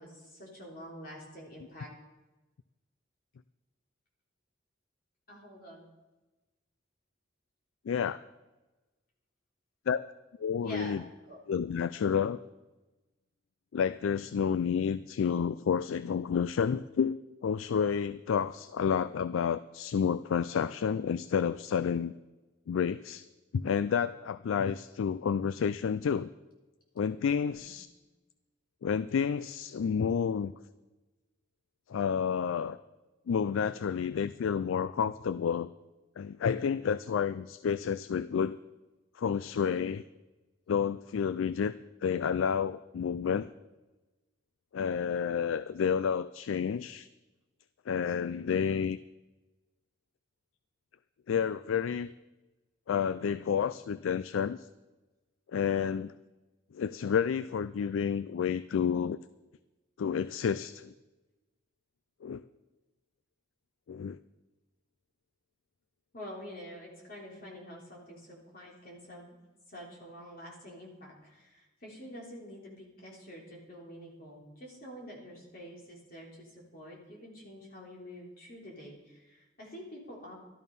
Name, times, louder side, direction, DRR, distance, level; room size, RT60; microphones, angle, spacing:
voice 1, 0.0-1.9 5.3-5.9 10.6-11.4 27.6-27.7 66.1-69.4 69.7-80.4, equal, 50° left, -2 dB, 3.6 m, -47 dB
voice 2, 7.9-8.2 9.9-10.1 10.4-11.0 11.5-12.4 13.7-22.1 22.7-23.3 23.5-26.3 27.0-27.9 28.8-30.5 31.9-32.8 33.3-35.7 36.2-38.6 39.2-40.0 40.7-41.7 42.0-43.5 44.7-47.1 47.9-49.0 51.3-52.1 52.9-54.7 55.5-56.1 56.7-59.2 60.0-60.9 62.2-62.4 63.9-64.2, left 7 dB, 85° left, 15 dB, 0.4 m, -30 dB
13.0 x 13.0 x 5.4 m, 1.1 s
head